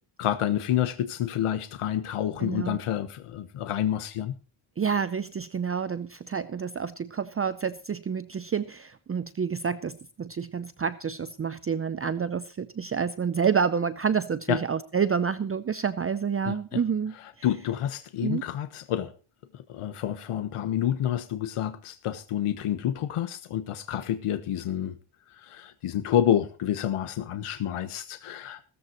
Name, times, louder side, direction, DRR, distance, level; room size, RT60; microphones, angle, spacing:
voice 1, 0.2-4.4 14.5-14.6 16.4-16.8 17.2-19.1 19.5-25.0 25.3-28.6, left 11 dB, 85° left, 1.2 m, -29 dB
voice 2, 2.4-2.8 4.8-17.1 18.2-18.4, right 6 dB, 30° right, 0.6 m, -28 dB
17.0 x 14.0 x 3.0 m
wide cardioid pair, 150°, 50 cm